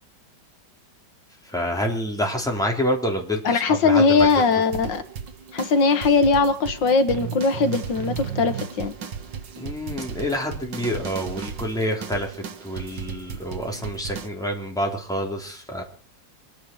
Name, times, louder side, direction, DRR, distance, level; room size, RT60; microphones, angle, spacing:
voice 1, 1.5-4.3 9.6-15.8, equal, ahead, 0 dB, 3.6 m, -27 dB
voice 2, 3.5-5.0 5.5-8.9, left 4 dB, 80° left, 9 dB, 1.9 m, -20 dB
sound 1, 4.2-14.3, right 7 dB, 80° right, 2.0 m, -35 dB
26.5 x 10.5 x 4.7 m, 0.43 s
omnidirectional pair, 2.0 m